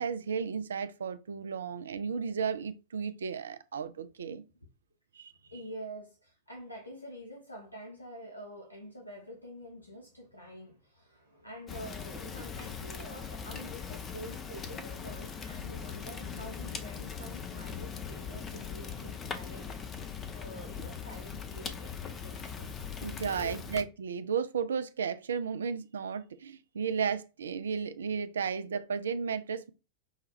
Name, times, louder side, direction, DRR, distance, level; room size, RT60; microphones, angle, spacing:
voice 1, 0.0-4.4 5.1-5.3 23.0-29.7, right 6 dB, 65° right, 0.3 m, -34 dB
voice 2, 5.5-22.7 23.3-23.6, equal, 85° left, 0.7 m, -47 dB
Fire, 11.7-23.8, left 6 dB, 25° left, 0.6 m, -40 dB
5.5 x 2.3 x 3.1 m
figure-of-eight pair, 90°, 0 cm